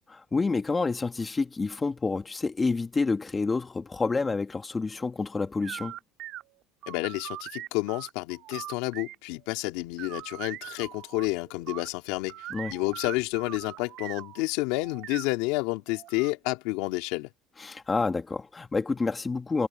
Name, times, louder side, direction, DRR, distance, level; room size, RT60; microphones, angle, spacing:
voice 1, 0.1-5.9 12.5-12.7 17.6-19.7, left 4 dB, 20° left, 2.0 m, -28 dB
sound 1, 5.6-9.6 10.0-11.9 12.3-14.4 14.8-16.3, right 14 dB, 60° right, 3.8 m, -41 dB
voice 2, 6.9-17.3, left 22 dB, 80° left, 2.7 m, -30 dB
supercardioid pair, 115°, 0 cm